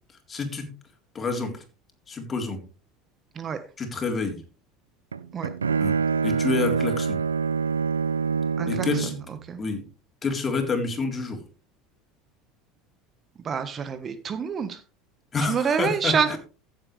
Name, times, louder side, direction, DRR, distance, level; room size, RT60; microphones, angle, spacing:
voice 1, 0.3-0.7 1.1-1.5 2.1-2.6 3.8-4.4 5.8-6.0 6.2-7.2 8.7-9.2 9.6-9.8 10.2-11.4 15.3-16.4, left 4 dB, 30° left, 3 dB, 3.8 m, -28 dB
Bowed string instrument, 5.1-9.3, right 5 dB, 85° right, 0.4 m, -25 dB
voice 2, 13.4-14.8 15.5-16.4, right 6 dB, 35° right, 10 dB, 1.4 m, -26 dB
15.5 x 7.8 x 3.3 m, 0.34 s
hypercardioid pair, 75°, 0 cm